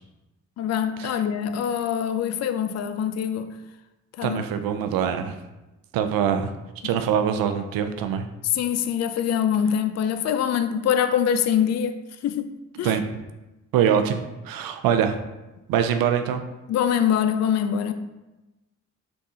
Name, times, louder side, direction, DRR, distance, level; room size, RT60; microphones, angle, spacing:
voice 1, 0.6-3.6 4.2-4.4 8.5-13.0 16.7-17.9, left 8 dB, 50° left, 0.4 m, -24 dB
voice 2, 4.2-5.3 5.9-6.5 6.8-8.3 12.8-13.0 13.7-15.2 15.7-16.4, right 8 dB, 75° right, 0.5 m, -23 dB
3.5 x 2.6 x 4.3 m
supercardioid pair, 45°, 35 cm